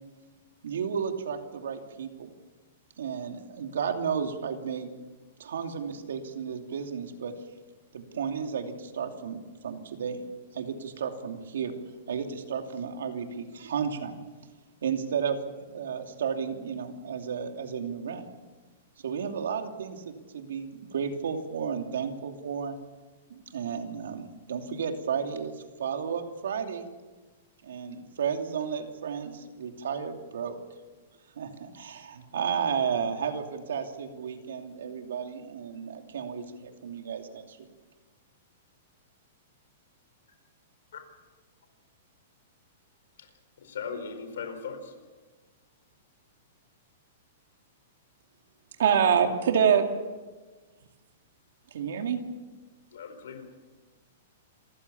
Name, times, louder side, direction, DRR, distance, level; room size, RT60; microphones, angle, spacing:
voice 1, 0.6-2.3 3.0-4.9 5.4-7.4 7.9-10.2 10.5-11.7 12.1-14.2 14.8-18.3 19.0-22.8 23.3-26.9 27.6-30.6 31.4-37.7, right 7 dB, 90° right, 5 dB, 2.8 m, -33 dB
voice 2, 43.6-44.9 52.9-53.4, left 5 dB, 85° left, 7 dB, 4.7 m, -38 dB
voice 3, 48.8-49.9 51.7-52.2, right 7 dB, 75° right, 5 dB, 2.3 m, -22 dB
27.0 x 15.0 x 7.1 m, 1.3 s
hypercardioid pair, 160°, 0 cm